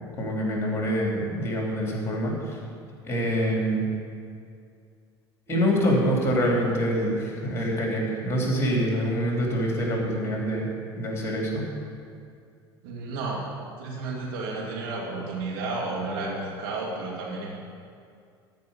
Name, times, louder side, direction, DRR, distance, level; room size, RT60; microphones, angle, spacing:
voice 1, 0.2-2.6 3.0-3.8 5.5-10.7 11.0-11.6, equal, 20° left, -1 dB, 3.4 m, -25 dB
voice 2, 12.8-13.5 13.8-17.6, right 3 dB, 60° right, -3 dB, 2.4 m, -32 dB
13.5 x 5.4 x 8.4 m, 2.3 s
figure-of-eight pair, 70°, 14 cm